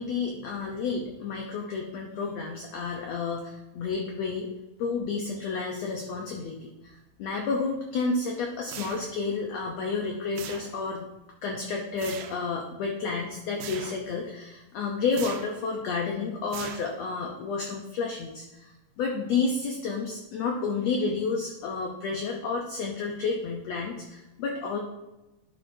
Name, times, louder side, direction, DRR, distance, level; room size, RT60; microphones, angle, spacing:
voice 1, 0.0-4.5 4.8-6.9 7.2-11.1 11.4-18.7 19.0-24.8, left 4 dB, 85° left, 1 dB, 1.4 m, -30 dB
sound 1, 8.7-9.3 10.4-11.0 12.0-12.5 13.6-14.1 15.1-15.7 16.5-17.2, right 9 dB, 85° right, 2.3 m, -41 dB
10.5 x 6.1 x 2.7 m, 1.0 s
omnidirectional pair, 3.9 m